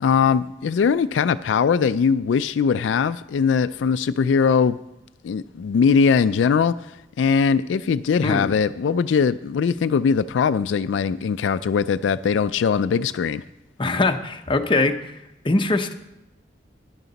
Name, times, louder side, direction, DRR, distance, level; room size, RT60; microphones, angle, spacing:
voice 1, 0.0-4.8 5.2-6.7 7.2-13.4, left 6 dB, 85° left, 13 dB, 0.3 m, -20 dB
voice 2, 8.2-8.5 13.8-15.1 15.4-15.9, left 2 dB, 30° left, 6 dB, 0.7 m, -22 dB
12.0 x 10.5 x 4.0 m, 0.88 s
head